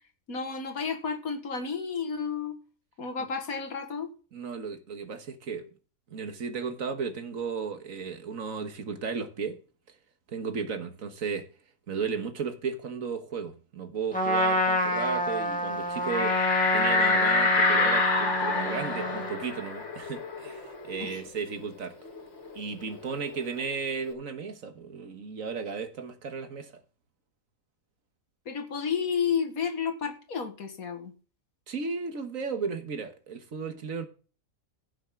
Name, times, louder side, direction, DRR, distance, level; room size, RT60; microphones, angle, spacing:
voice 1, 0.3-2.6 3.0-4.1 21.0-21.2 28.5-31.1, left 6 dB, 85° left, 2.2 m, -31 dB
voice 2, 4.3-5.7 6.1-9.6 10.3-11.5 11.9-16.4 16.7-22.0 22.5-26.7 31.7-34.1, right 5 dB, 70° right, 1.8 m, -34 dB
Trumpet, 14.1-19.4, left 1 dB, 5° left, 2.3 m, -28 dB
sound 1, 16.1-21.3 21.6-21.7 22.1-23.7, left 3 dB, 55° left, 1.9 m, -27 dB
16.0 x 6.7 x 3.7 m
omnidirectional pair, 1.5 m